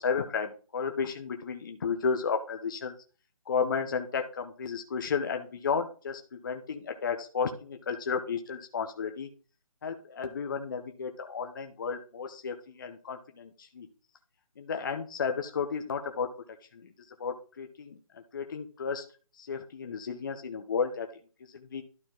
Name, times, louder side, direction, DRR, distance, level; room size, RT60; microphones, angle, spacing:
voice 1, 0.0-2.9 3.5-9.3 9.8-13.9 14.6-16.3 16.7-16.8 17.2-18.0 18.3-19.0 19.4-21.1 21.5-21.8, left 5 dB, 35° left, 5 dB, 0.7 m, -33 dB
12.0 x 4.4 x 3.7 m, 0.37 s
hypercardioid pair, 165°, 18 cm